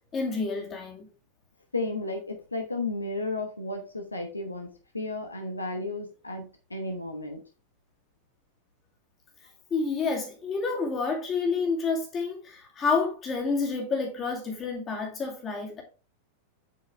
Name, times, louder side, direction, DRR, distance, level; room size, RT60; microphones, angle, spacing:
voice 1, 0.1-1.1 9.7-15.8, left 4 dB, 25° left, 2.3 m, -29 dB
voice 2, 1.7-7.4, left 2 dB, 80° left, 1.0 m, -33 dB
8.1 x 4.8 x 3.3 m
figure-of-eight pair, 90°, 0 cm